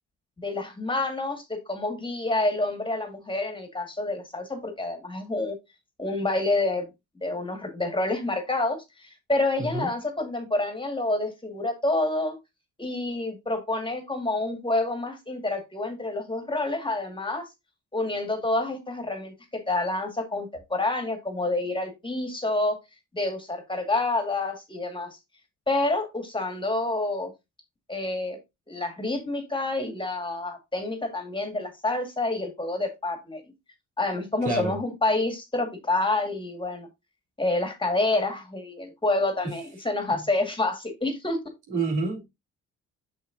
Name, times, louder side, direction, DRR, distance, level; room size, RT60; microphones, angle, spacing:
voice 1, 0.4-5.6 6.0-6.9 7.2-12.4 12.8-17.5 17.9-22.8 23.1-25.1 25.7-27.3 27.9-28.4 28.7-33.4 34.0-36.9 37.4-41.4, left 2 dB, 15° left, 1.9 m, -28 dB
voice 2, 34.4-34.8 39.4-39.6 40.1-40.2 41.7-42.3, right 3 dB, 85° right, 3.4 m, -28 dB
6.5 x 6.5 x 2.7 m
cardioid pair, 90°, 30 cm